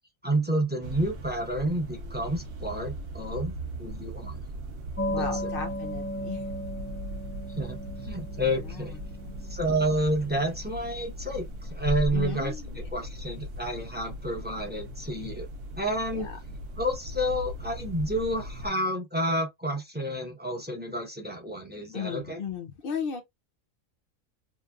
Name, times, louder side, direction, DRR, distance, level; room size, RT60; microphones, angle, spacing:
voice 1, 0.2-4.4 5.1-5.5 7.6-8.9 9.5-12.5 12.9-15.5 15.8-16.3 16.8-22.4, right 1 dB, 10° right, 0.7 m, -30 dB
sound 1, 0.8-18.7, equal, 70° right, 0.9 m, -38 dB
sound 2, 5.0-11.2, equal, 10° left, 1.0 m, -37 dB
voice 2, 5.1-6.5 8.6-9.0 9.3-9.4 12.1-12.8 16.1-16.4 21.9-23.2, left 6 dB, 55° left, 0.6 m, -36 dB
2.9 x 2.5 x 2.3 m
omnidirectional pair, 1.4 m